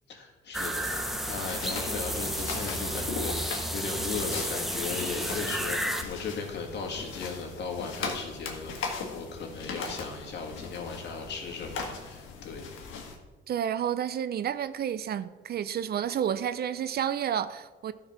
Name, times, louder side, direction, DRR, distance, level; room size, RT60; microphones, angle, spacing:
voice 1, 0.1-12.6, left 4 dB, 60° left, 2.2 m, -37 dB
sound 1, 0.5-6.0, equal, ahead, 0.9 m, -32 dB
sound 2, 0.8-13.2, left 4 dB, 80° left, 1.6 m, -39 dB
voice 2, 13.5-17.9, right 9 dB, 55° right, 0.5 m, -30 dB
12.5 x 4.7 x 5.7 m
cardioid pair, 90°, 20 cm